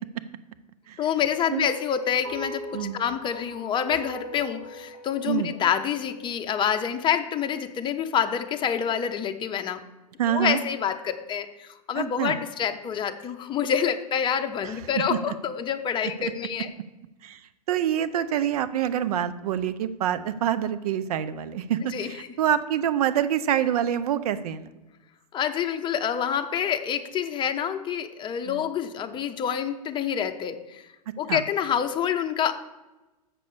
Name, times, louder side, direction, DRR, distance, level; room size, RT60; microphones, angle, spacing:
voice 1, 1.0-9.8 10.3-16.7 21.9-22.1 25.3-30.8 31.2-32.5, left 8 dB, 25° left, 8 dB, 0.7 m, -27 dB
sound 1, 2.2-6.7, right 1 dB, 45° right, 1.5 m, -41 dB
voice 2, 10.2-10.6 12.0-12.4 14.6-15.3 16.2-16.3 17.2-17.4 17.7-24.7 28.5-28.6 31.3-31.4, right 10 dB, 65° right, 13 dB, 0.6 m, -26 dB
7.5 x 5.2 x 6.7 m, 1.1 s
hypercardioid pair, 105°, 20 cm